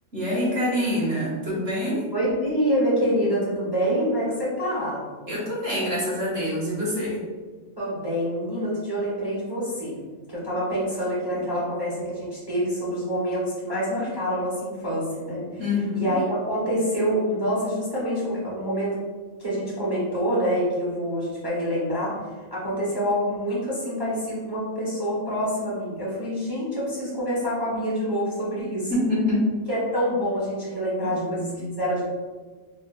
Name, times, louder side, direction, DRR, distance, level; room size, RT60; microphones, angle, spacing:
voice 1, 0.1-2.0 5.3-7.2 11.3-11.6 15.6-16.2 28.9-29.5 31.0-31.8, left 1 dB, 50° right, -6 dB, 1.2 m, -26 dB
voice 2, 2.1-5.0 7.8-10.0 10.3-15.6 15.9-18.9 19.4-22.2 22.5-28.9 29.7-31.5 31.8-32.0, equal, 25° right, -8 dB, 0.6 m, -26 dB
4.1 x 2.1 x 2.2 m, 1.4 s
omnidirectional pair, 1.4 m